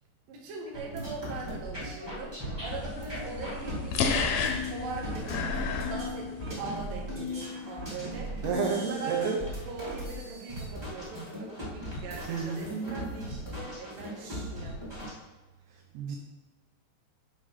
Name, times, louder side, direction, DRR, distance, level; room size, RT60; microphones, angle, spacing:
voice 1, 0.3-8.5 8.7-9.2 9.7-14.9, right 4 dB, 60° right, -1 dB, 2.7 m, -41 dB
sound 1, 0.7-15.1, left 1 dB, 15° right, 0.9 m, -38 dB
sound 2, 2.7-6.8, left 5 dB, 80° left, 2.2 m, -32 dB
voice 2, 8.4-9.4 12.3-13.1 14.2-14.5 15.9-16.2, right 6 dB, 80° right, 0 dB, 2.9 m, -31 dB
10.5 x 3.5 x 5.6 m, 1.3 s
omnidirectional pair, 5.1 m